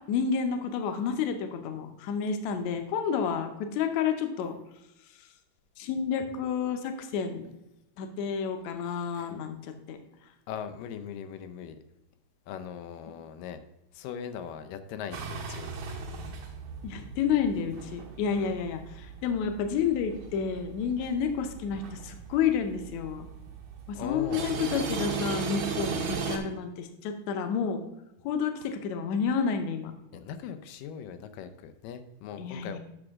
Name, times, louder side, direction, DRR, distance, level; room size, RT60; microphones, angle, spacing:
voice 1, 0.1-4.6 5.8-7.5 8.0-10.0 16.8-23.3 23.9-27.8 28.2-29.9 32.4-32.8, left 6 dB, 70° left, 7 dB, 1.9 m, -30 dB
voice 2, 10.5-11.8 12.5-13.6 13.9-15.7 18.3-18.6 24.0-24.5 30.1-32.8, left 8 dB, 85° left, 9 dB, 2.3 m, -40 dB
sound 1, 15.1-26.4, right 5 dB, 65° right, 2.2 m, -37 dB
9.8 x 6.1 x 3.6 m, 0.87 s
omnidirectional pair, 3.8 m